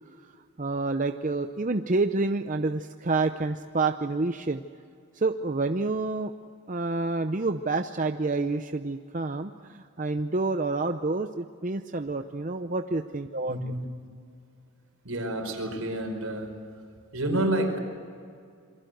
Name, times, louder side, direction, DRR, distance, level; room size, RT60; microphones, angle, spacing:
voice 1, 0.2-4.6 5.1-6.3 6.7-13.6, right 3 dB, 35° right, 7 dB, 0.6 m, -28 dB
voice 2, 13.5-13.9 15.0-16.5 17.1-17.8, right 1 dB, 75° right, 4 dB, 5.0 m, -29 dB
27.5 x 23.0 x 7.9 m, 2.3 s
head